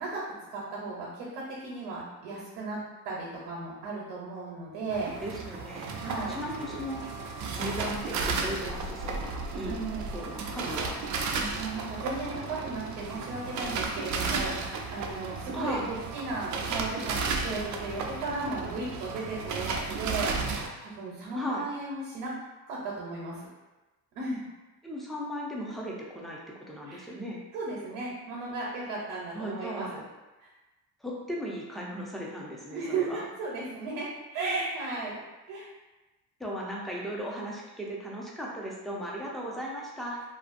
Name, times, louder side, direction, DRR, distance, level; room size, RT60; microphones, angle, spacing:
voice 1, 0.0-5.2 6.0-6.4 9.7-10.0 11.3-22.3 22.7-23.4 24.2-24.4 26.9-27.1 27.5-30.0 30.4-30.5 32.7-35.2 35.5-35.7, right 3 dB, 85° right, -4 dB, 0.8 m, -35 dB
sound 1, 4.9-20.7, right 4 dB, 45° right, 0.4 m, -34 dB
voice 2, 5.2-6.0 6.3-7.0 7.5-9.8 10.1-11.0 15.5-15.9 21.3-21.7 24.8-27.4 29.3-29.9 31.0-33.2 36.4-40.2, equal, ahead, -4 dB, 0.6 m, -36 dB
2.5 x 2.4 x 2.5 m, 1.1 s
supercardioid pair, 80°, 42 cm